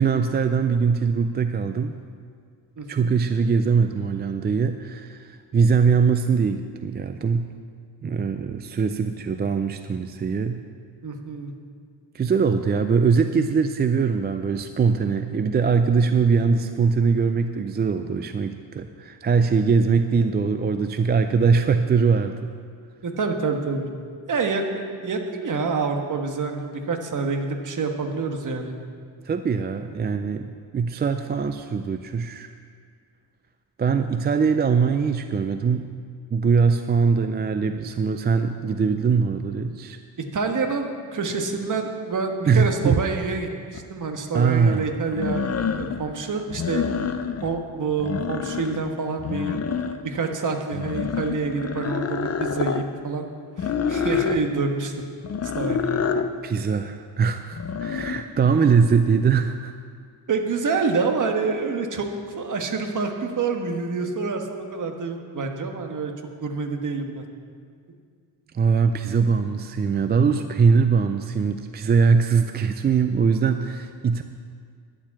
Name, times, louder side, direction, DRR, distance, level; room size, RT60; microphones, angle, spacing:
voice 1, 0.0-1.9 2.9-7.5 8.0-10.6 12.1-22.5 29.3-32.5 33.8-35.9 36.3-40.0 42.5-43.0 44.3-44.9 56.4-59.7 68.5-74.2, right 5 dB, 25° right, 8 dB, 0.3 m, -22 dB
voice 2, 2.8-3.1 11.0-11.5 23.0-23.9 24.3-28.7 40.3-45.4 45.8-46.9 47.4-49.6 50.0-53.2 53.6-54.9 55.5-56.0 60.3-62.1 62.4-66.1 66.4-67.2, right 4 dB, 45° right, 4 dB, 1.4 m, -27 dB
sound 1, 43.7-43.8 45.1-46.0 46.5-47.5 47.9-48.9 49.2-50.2 50.7-52.8 53.6-54.4 55.2-56.3 57.5-58.2, left 6 dB, 35° left, 0.6 m, -27 dB
11.0 x 7.4 x 8.6 m, 2.1 s
cardioid pair, 120°, 44 cm